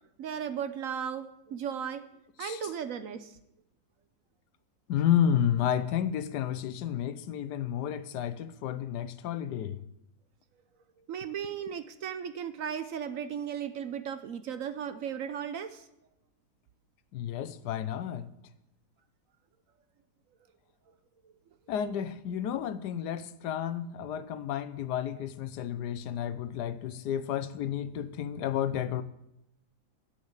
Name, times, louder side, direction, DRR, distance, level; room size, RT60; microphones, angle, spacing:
voice 1, 0.2-2.0 2.4-3.3 11.1-15.8, right 8 dB, 60° right, 1.0 m, -36 dB
voice 2, 4.9-9.8 17.1-18.3 21.7-29.0, left 9 dB, 85° left, 1.3 m, -31 dB
10.0 x 7.9 x 8.0 m
omnidirectional pair, 1.8 m